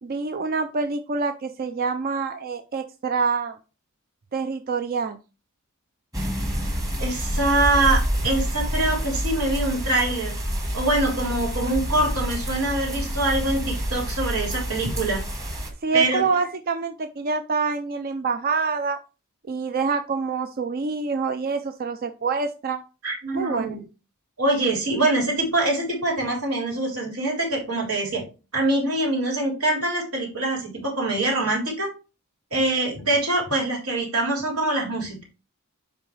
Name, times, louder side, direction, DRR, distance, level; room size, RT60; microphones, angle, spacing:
voice 1, 0.0-3.6 4.3-5.2 15.8-19.0 19.5-22.8 23.3-23.8, right 4 dB, 45° right, 8 dB, 0.5 m, -26 dB
sound 1, 6.1-15.7, equal, 15° right, 1.3 m, -28 dB
voice 2, 7.0-10.3 10.7-15.2 15.9-16.2 23.0-23.8 24.4-28.2 28.5-31.9 32.5-35.2, right 2 dB, 85° right, -3 dB, 3.6 m, -24 dB
10.5 x 3.9 x 3.2 m, 0.32 s
head